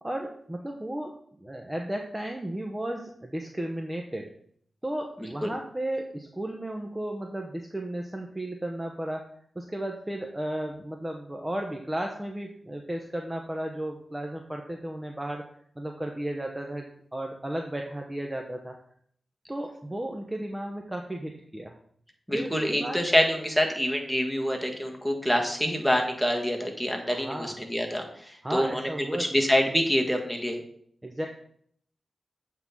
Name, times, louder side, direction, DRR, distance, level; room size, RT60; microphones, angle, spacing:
voice 1, 0.0-4.3 4.8-9.2 9.5-15.5 15.8-18.8 19.5-21.8 22.3-23.0 27.0-27.5 28.4-29.3 31.0-31.3, right 1 dB, 20° right, 2 dB, 0.9 m, -34 dB
voice 2, 22.3-28.9 29.2-30.6, equal, ahead, 2 dB, 1.7 m, -26 dB
7.8 x 3.8 x 5.8 m, 0.65 s
cardioid pair, 50°, 0 cm